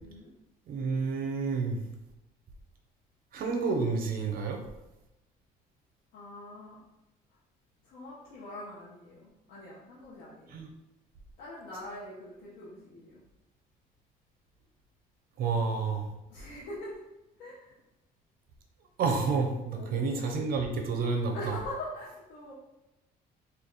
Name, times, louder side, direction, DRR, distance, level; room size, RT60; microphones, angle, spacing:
voice 1, 0.7-1.8 3.3-4.6 10.5-10.7 15.4-16.0 19.0-21.5, right 4 dB, 60° right, 3 dB, 0.8 m, -29 dB
voice 2, 6.1-6.8 7.8-10.6 11.4-13.2 16.3-17.0 17.4-17.7 19.7-20.5 21.3-22.5, left 1 dB, 80° left, -8 dB, 1.1 m, -43 dB
3.4 x 2.8 x 3.9 m, 0.94 s
cardioid pair, 110°, 17 cm